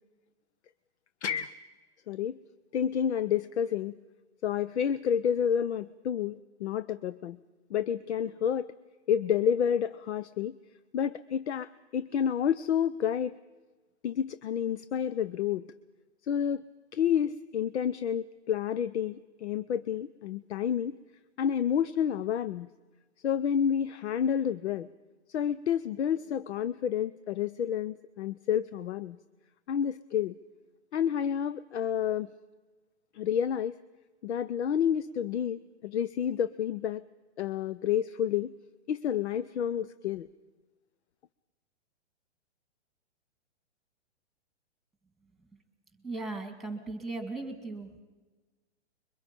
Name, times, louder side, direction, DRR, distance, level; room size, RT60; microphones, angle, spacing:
voice 1, 1.2-1.5 2.1-2.4 2.7-4.0 4.4-7.4 7.7-8.7 9.1-10.6 10.9-13.4 14.0-15.7 16.3-16.6 16.9-21.0 21.4-22.7 23.2-24.9 25.3-29.2 29.7-30.3 30.9-32.3 33.1-33.8 34.2-37.0 37.4-38.5 38.9-40.3, left 8 dB, 70° left, 14 dB, 0.8 m, -29 dB
voice 2, 46.0-48.0, right 3 dB, ahead, 7 dB, 2.2 m, -37 dB
26.0 x 23.0 x 5.3 m, 1.2 s
hypercardioid pair, 150°, 36 cm